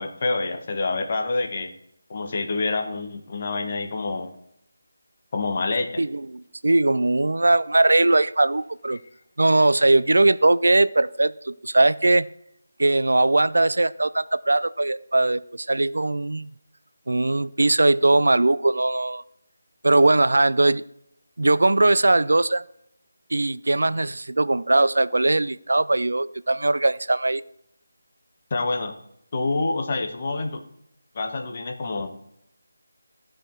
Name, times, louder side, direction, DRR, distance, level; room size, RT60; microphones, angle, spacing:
voice 1, 0.0-1.7 2.1-4.3 5.3-6.0 28.5-28.9 29.3-30.6 31.1-32.1, left 3 dB, 40° left, 5 dB, 1.3 m, -27 dB
voice 2, 6.0-9.0 9.4-12.3 12.8-16.5 17.1-19.2 19.8-20.8 21.4-22.6 23.3-27.4, right 2 dB, 70° right, 16 dB, 0.4 m, -20 dB
15.0 x 5.0 x 4.5 m, 0.75 s
figure-of-eight pair, 160°, 0 cm